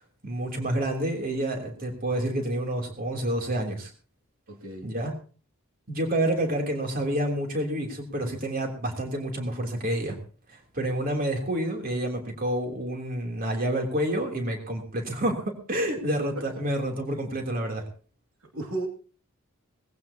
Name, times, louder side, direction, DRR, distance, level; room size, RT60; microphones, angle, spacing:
voice 1, 0.2-3.9 4.8-5.1 5.9-10.2 10.5-17.8, right 1 dB, 45° right, 2 dB, 3.2 m, -28 dB
voice 2, 4.5-4.9 16.4-16.7 18.4-18.9, right 2 dB, 80° right, 3 dB, 2.5 m, -35 dB
19.5 x 15.5 x 2.9 m, 0.37 s
head